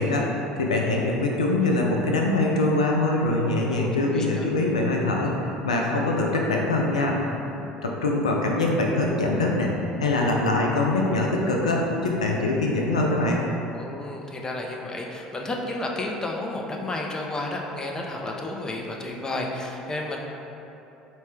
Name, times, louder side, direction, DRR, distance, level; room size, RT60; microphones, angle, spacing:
voice 1, 0.0-7.2 7.6-13.4, left 2 dB, 85° left, -1 dB, 0.3 m, -23 dB
voice 2, 3.7-4.5 13.7-20.2, left 2 dB, 20° left, 0 dB, 0.5 m, -32 dB
4.1 x 2.2 x 3.6 m, 2.9 s
figure-of-eight pair, 65°, 3 cm